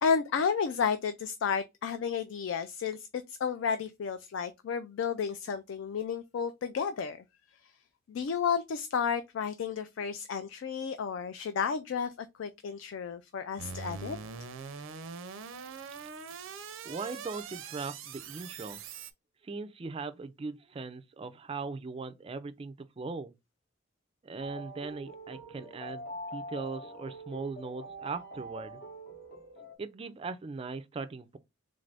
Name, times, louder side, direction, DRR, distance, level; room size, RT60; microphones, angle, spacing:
voice 1, 0.0-7.2 8.1-14.2, left 6 dB, 70° left, 0.3 m, -32 dB
sound 1, 13.6-19.1, right 5 dB, 90° right, 0.5 m, -43 dB
voice 2, 16.8-18.8 19.4-23.3 24.2-26.1 26.3-28.8 29.8-31.4, right 4 dB, 25° right, 0.3 m, -39 dB
sound 2, 24.4-29.7, right 1 dB, 50° left, 0.8 m, -44 dB
3.7 x 2.5 x 3.3 m
head